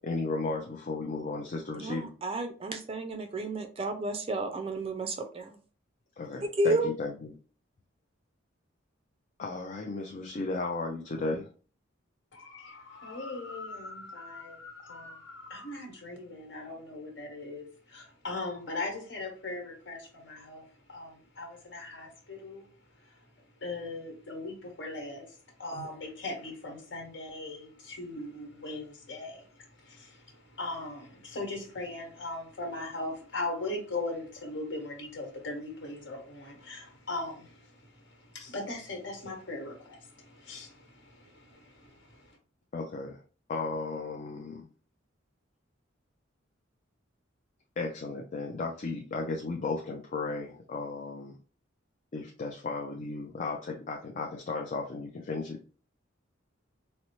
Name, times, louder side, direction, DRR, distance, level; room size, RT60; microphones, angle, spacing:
voice 1, 0.0-2.1 6.2-7.3 9.4-11.5 42.7-43.2 43.5-44.7 47.8-51.3 52.1-55.6, left 3 dB, 40° left, 1 dB, 0.4 m, -35 dB
voice 2, 1.7-5.6 6.4-6.9, right 2 dB, 30° right, 7 dB, 0.4 m, -31 dB
voice 3, 12.3-22.7 23.0-23.3 23.6-42.3, left 2 dB, 65° left, 1 dB, 1.3 m, -39 dB
4.1 x 2.0 x 2.9 m, 0.39 s
head